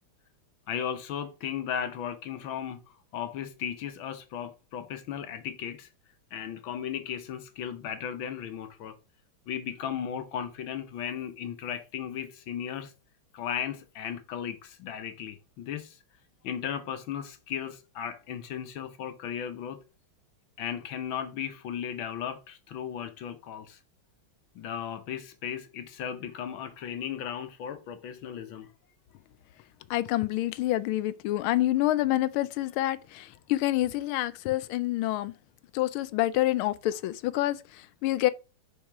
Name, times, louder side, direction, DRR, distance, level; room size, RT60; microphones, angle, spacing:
voice 1, 0.7-5.9 6.3-9.0 9.5-12.9 13.3-16.0 16.4-19.8 20.6-23.8 24.5-28.7, left 9 dB, 75° left, 1.7 m, -36 dB
voice 2, 29.9-35.3 35.7-38.3, left 15 dB, 90° left, 1.5 m, -27 dB
7.1 x 4.7 x 4.8 m
omnidirectional pair, 2.3 m